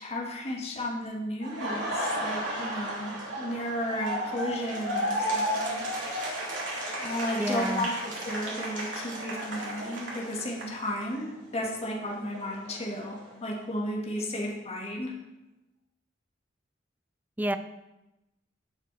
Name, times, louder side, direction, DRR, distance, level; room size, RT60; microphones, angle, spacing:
voice 1, 0.0-5.8 7.0-15.1, left 1 dB, 35° left, -1 dB, 1.9 m, -34 dB
Laughter, 1.4-11.2 11.6-13.6, equal, 85° right, 2.9 m, -34 dB
voice 2, 7.4-7.9 17.4-17.6, right 1 dB, 10° right, 10 dB, 0.5 m, -29 dB
15.0 x 5.7 x 4.2 m, 0.96 s
head